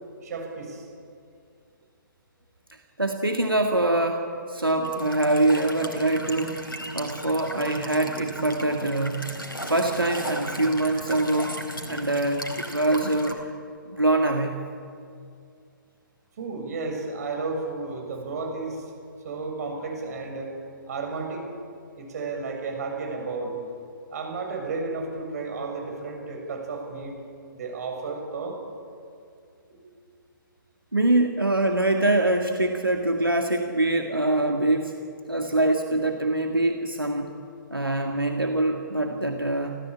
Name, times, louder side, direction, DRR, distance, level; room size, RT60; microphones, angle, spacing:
voice 1, 0.2-0.9 16.4-18.9 19.2-20.5 20.9-21.5 21.9-23.5 24.1-27.1 27.5-28.6 29.7-29.8, right 3 dB, 50° right, 2 dB, 6.6 m, -32 dB
voice 2, 2.7-6.6 6.9-9.3 9.7-11.6 11.9-13.4 13.9-14.6 30.9-35.0 35.3-37.4 37.7-39.8, right 2 dB, 90° right, 3 dB, 2.1 m, -24 dB
Walk footsteps / Chirp tweet / Stream, 4.8-13.3, equal, 90° left, 4.0 m, -36 dB
30.0 x 15.0 x 8.7 m, 2.4 s
figure-of-eight pair, 130°, 11 cm